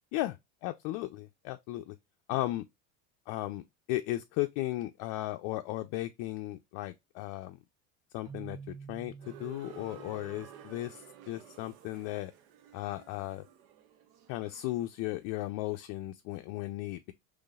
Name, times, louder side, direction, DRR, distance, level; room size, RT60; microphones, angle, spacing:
voice 1, 0.6-2.0 2.3-2.7 3.3-7.6 8.1-12.3 12.7-13.4 14.3-17.1, left 16 dB, 50° left, 0.5 m, -36 dB
Keyboard (musical), 8.3-11.2, right 5 dB, 10° right, 0.5 m, -49 dB
sound 1, 9.2-15.1, right 8 dB, 70° right, 0.9 m, -53 dB
3.8 x 3.1 x 2.3 m
supercardioid pair, 110°, 42 cm